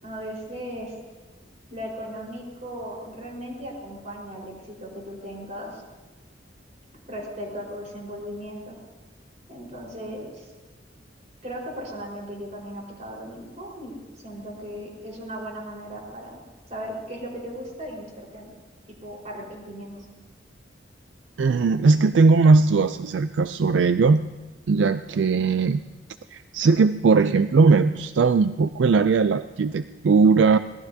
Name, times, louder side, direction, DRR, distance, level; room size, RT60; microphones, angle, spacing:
voice 1, 0.0-0.9 1.7-5.8 7.1-8.7 9.5-10.5 11.4-16.4 16.7-18.5 18.9-20.1, equal, 40° right, -2 dB, 4.6 m, -37 dB
voice 2, 21.4-24.2 24.7-25.8 26.3-30.6, right 4 dB, 75° right, 11 dB, 0.4 m, -19 dB
24.5 x 19.0 x 2.8 m, 1.2 s
head